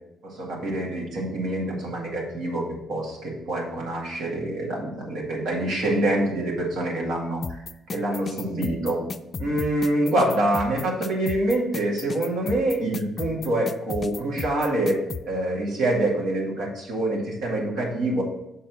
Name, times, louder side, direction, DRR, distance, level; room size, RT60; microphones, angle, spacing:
voice 1, 0.2-7.6 7.9-9.0 9.4-18.2, right 1 dB, 80° right, -2 dB, 2.0 m, -26 dB
sound 1, 7.4-15.2, left 4 dB, 40° left, 0.3 m, -34 dB
6.3 x 4.5 x 5.5 m, 0.86 s
cardioid pair, 90°, 0 cm